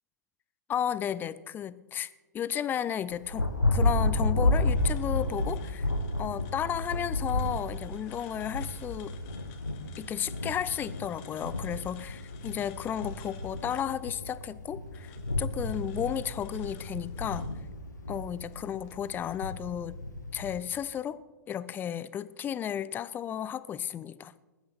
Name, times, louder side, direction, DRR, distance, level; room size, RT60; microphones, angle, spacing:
voice 1, 0.7-2.1 2.3-5.9 6.2-9.2 10.0-17.5 18.1-20.0 20.3-21.2 21.5-24.3, left 9 dB, 20° left, 17 dB, 0.6 m, -33 dB
Thunder, 3.1-20.6, left 2 dB, 90° left, 1.1 m, -32 dB
sound 1, 4.4-19.4, left 4 dB, 45° left, 2.1 m, -54 dB
21.0 x 11.5 x 4.1 m, 1.2 s
figure-of-eight pair, 105°, 9 cm